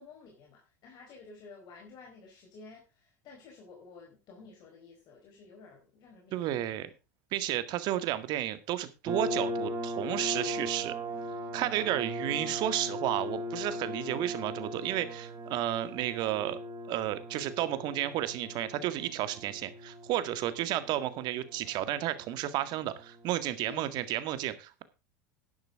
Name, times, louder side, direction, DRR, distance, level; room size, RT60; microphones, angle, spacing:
voice 1, 0.0-6.8 23.7-23.9, left 4 dB, 50° left, 0 dB, 4.6 m, -52 dB
voice 2, 6.3-6.9 7.3-10.9 11.5-16.6 16.9-24.8, right 13 dB, 55° right, 12 dB, 1.8 m, -32 dB
sound 1, 9.1-23.5, equal, 25° right, 3.0 m, -39 dB
11.5 x 10.5 x 3.6 m, 0.29 s
hypercardioid pair, 100°, 9 cm